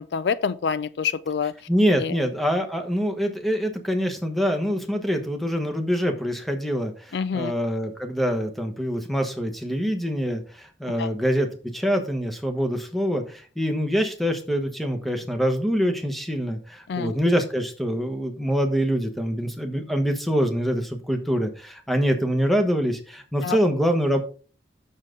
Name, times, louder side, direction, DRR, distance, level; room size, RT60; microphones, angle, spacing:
voice 1, 0.0-1.5 2.0-2.2 7.1-7.5 11.0-11.1 16.9-17.1 23.4-23.6, left 6 dB, 65° left, 0.4 m, -26 dB
voice 2, 1.7-24.2, equal, ahead, 1.1 m, -25 dB
7.3 x 6.5 x 3.7 m
head